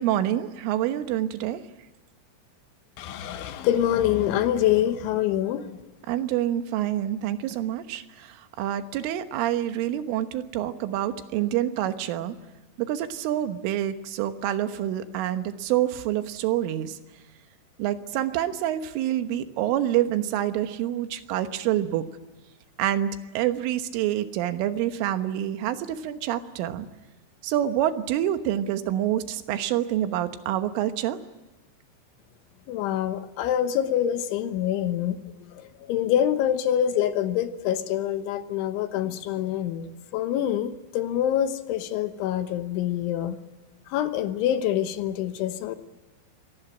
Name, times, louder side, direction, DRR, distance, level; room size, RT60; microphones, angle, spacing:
voice 1, 0.0-1.6 6.1-12.4 12.8-17.0 17.8-22.1 22.8-26.9 27.4-31.2, right 12 dB, 85° right, 9 dB, 3.8 m, -27 dB
voice 2, 3.0-5.8 32.7-35.2 35.6-43.4 43.9-45.8, left 11 dB, 75° left, 9 dB, 3.5 m, -26 dB
24.5 x 18.5 x 9.1 m, 1.1 s
omnidirectional pair, 5.6 m